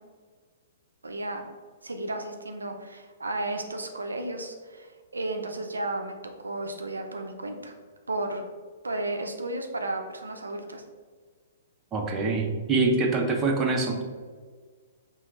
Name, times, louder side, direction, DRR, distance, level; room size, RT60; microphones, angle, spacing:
voice 1, 1.0-1.5 1.8-6.2 6.4-7.7 8.1-8.4 8.8-10.8, right 2 dB, 85° right, 4 dB, 0.5 m, -33 dB
voice 2, 11.9-14.0, right 3 dB, 20° right, 1 dB, 0.8 m, -25 dB
3.6 x 2.9 x 4.5 m, 1.5 s
figure-of-eight pair, 115°, 0 cm